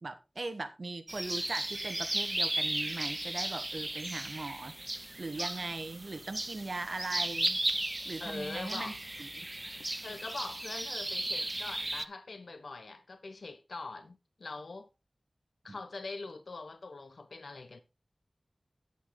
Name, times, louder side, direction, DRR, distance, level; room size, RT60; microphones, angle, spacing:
voice 1, 0.0-4.8 5.2-7.6 8.0-8.9 9.2-9.4 15.7-15.8, right 3 dB, 65° right, 1.5 m, -39 dB
sound 1, 1.1-12.0, right 1 dB, 25° right, 0.8 m, -35 dB
voice 2, 8.2-9.0 10.0-14.9 15.6-17.8, left 3 dB, 85° left, 1.0 m, -43 dB
10.5 x 8.4 x 3.9 m
wide cardioid pair, 70°, 0 cm